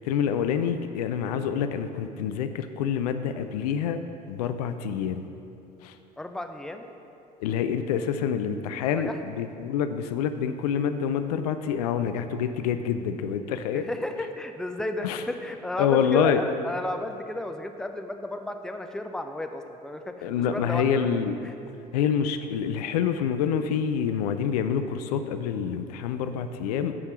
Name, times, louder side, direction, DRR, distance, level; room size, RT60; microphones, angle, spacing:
voice 1, 0.1-4.0 4.3-5.2 5.8-5.9 7.4-9.1 9.4-13.8 15.0-15.2 15.8-16.4 20.2-21.3 21.9-26.9, left 8 dB, 70° left, 9 dB, 0.5 m, -27 dB
voice 2, 6.2-6.8 8.8-9.2 13.7-21.6, left 1 dB, 5° left, 6 dB, 0.6 m, -33 dB
8.4 x 5.4 x 6.1 m, 2.8 s
figure-of-eight pair, 65°, 21 cm